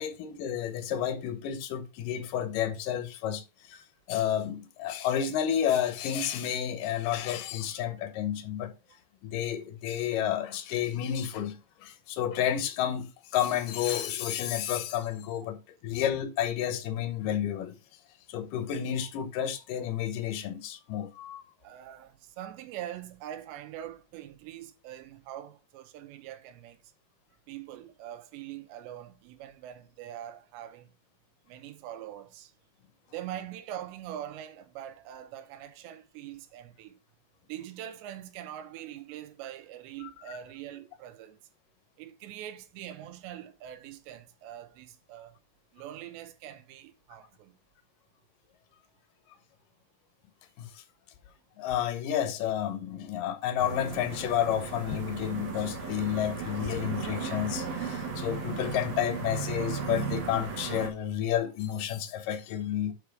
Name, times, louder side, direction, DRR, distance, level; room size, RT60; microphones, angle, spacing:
voice 1, 0.0-8.7 9.2-17.7 18.3-21.4 40.0-40.4 50.6-50.7 51.6-62.9, left 10 dB, 75° left, 2.1 m, -31 dB
voice 2, 21.6-26.8 27.5-30.9 31.5-32.5 33.1-37.0 37.5-41.4 42.0-45.4 45.7-47.5, right 11 dB, 85° right, 3.1 m, -43 dB
sound 1, 53.6-60.9, right 5 dB, 55° right, 1.9 m, -36 dB
7.3 x 4.9 x 4.7 m
omnidirectional pair, 4.9 m